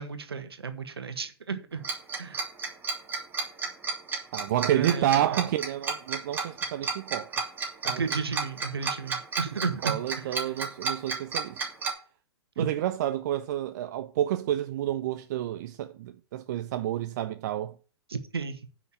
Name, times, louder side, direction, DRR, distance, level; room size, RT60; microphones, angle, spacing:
voice 1, 0.0-1.8 2.2-2.4 4.7-5.4 7.8-10.3 12.6-12.7 18.1-18.6, right 5 dB, 70° right, 1.6 m, -33 dB
Tick-tock, 1.8-11.9, right 4 dB, 15° right, 3.0 m, -31 dB
voice 2, 4.3-7.3 7.8-8.2 9.8-11.6 12.6-17.8, right 12 dB, 45° right, 0.6 m, -29 dB
9.5 x 6.0 x 7.3 m
figure-of-eight pair, 110°, 13 cm